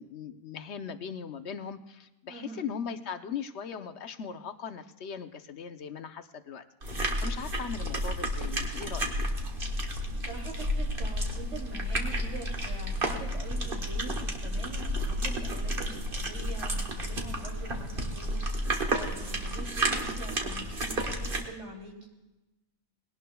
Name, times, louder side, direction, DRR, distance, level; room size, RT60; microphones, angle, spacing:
voice 1, 0.0-9.1, left 7 dB, 60° left, 9 dB, 1.0 m, -39 dB
voice 2, 2.3-2.7 10.0-22.1, right 1 dB, 60° right, 0 dB, 3.2 m, -44 dB
sound 1, 6.8-21.4, right 1 dB, 40° right, 1.6 m, -31 dB
21.0 x 17.5 x 2.3 m, 1.0 s
omnidirectional pair, 1.4 m